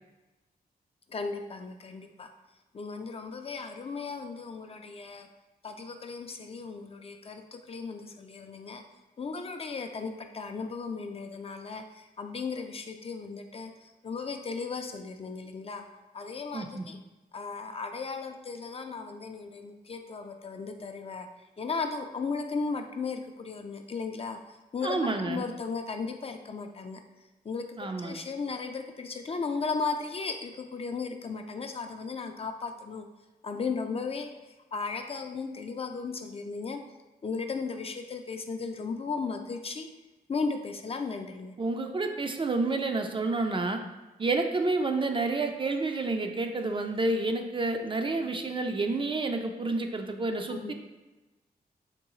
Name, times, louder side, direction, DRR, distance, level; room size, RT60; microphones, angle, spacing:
voice 1, 1.1-2.3 2.7-5.3 5.6-8.8 9.2-11.8 12.2-13.7 14.0-15.8 16.1-17.0 17.3-21.3 21.6-24.4 24.7-27.0 27.5-27.6 28.0-33.0 33.4-34.3 34.7-36.8 37.2-39.9 40.3-41.5 50.5-50.7, left 4 dB, 40° left, 5 dB, 0.3 m, -35 dB
voice 2, 16.5-16.9 24.8-25.4 27.8-28.2 41.6-43.8 44.2-50.7, right 3 dB, 30° right, 5 dB, 0.4 m, -29 dB
3.6 x 3.0 x 3.0 m, 1.1 s
cardioid pair, 75°, 16 cm